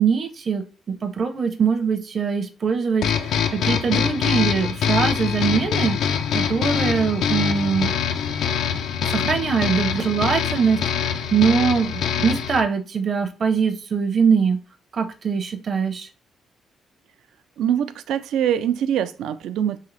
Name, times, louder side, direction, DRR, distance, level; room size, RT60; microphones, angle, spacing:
voice 1, 0.0-7.9 9.1-14.6 14.9-16.1, right 6 dB, 45° right, 7 dB, 0.6 m, -22 dB
sound 1, 3.0-12.6, left 8 dB, 75° left, 0.4 m, -24 dB
voice 2, 17.6-19.8, right 9 dB, 80° right, 11 dB, 0.3 m, -23 dB
3.8 x 2.7 x 3.2 m, 0.34 s
cardioid pair, 90°, 0 cm